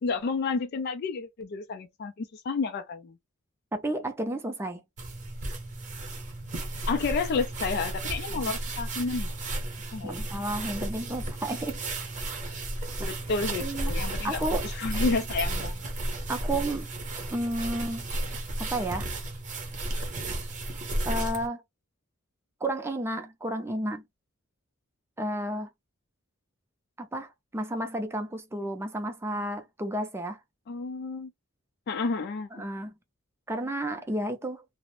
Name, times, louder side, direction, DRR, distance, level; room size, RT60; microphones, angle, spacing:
voice 1, 0.0-3.1 6.9-9.3 9.9-10.3 13.0-15.8 30.7-31.3 31.9-32.5, left 4 dB, 50° left, 0.3 m, -30 dB
voice 2, 3.7-4.8 8.3-8.5 10.0-11.8 13.0-13.1 13.6-13.9 14.2-14.6 16.3-16.9 17.3-18.1 18.6-19.1 21.1-21.6 22.6-24.0 25.2-25.7 27.0-30.4 32.5-32.9 33.5-34.6, right 1 dB, 10° right, 0.5 m, -32 dB
sound 1, 5.0-21.5, right 1 dB, 35° right, 0.8 m, -33 dB
2.5 x 2.0 x 3.0 m
head